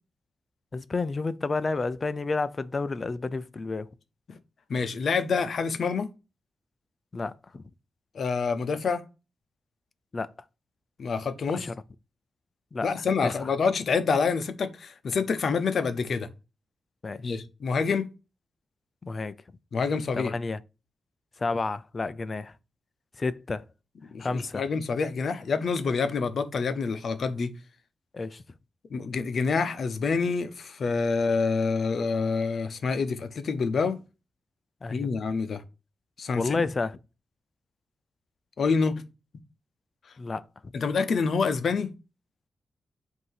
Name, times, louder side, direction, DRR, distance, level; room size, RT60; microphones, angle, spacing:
voice 1, 0.7-3.9 7.1-7.6 10.1-10.3 11.5-11.7 12.7-12.9 17.0-17.2 19.0-19.3 20.2-20.6 21.4-22.5 23.2-23.6 24.2-24.6 28.1-28.4 34.8-35.1 36.3-37.0 40.2-40.4, left 3 dB, 25° left, 0.4 m, -30 dB
voice 2, 4.7-6.1 8.1-9.0 11.0-11.7 12.8-16.3 17.2-18.1 19.7-20.3 24.1-27.5 28.9-34.0 34.9-35.6 36.2-36.6 38.6-39.0 40.7-41.9, left 5 dB, 50° left, 0.7 m, -27 dB
8.1 x 2.7 x 5.6 m
wide cardioid pair, 175°, 0 cm